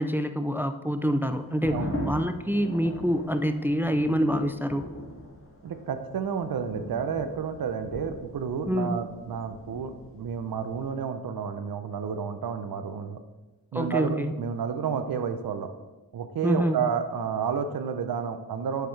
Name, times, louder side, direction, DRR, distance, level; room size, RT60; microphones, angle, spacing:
voice 1, 0.0-4.9 8.7-9.0 13.7-14.3 16.4-16.9, equal, 5° right, 9 dB, 0.4 m, -26 dB
sound 1, 1.4-10.9, left 1 dB, 35° left, 1.8 m, -40 dB
voice 2, 5.6-13.2 13.7-15.7 16.1-18.9, right 7 dB, 70° right, 8 dB, 0.7 m, -31 dB
7.7 x 6.7 x 3.2 m, 1.1 s
cardioid pair, 75°, 37 cm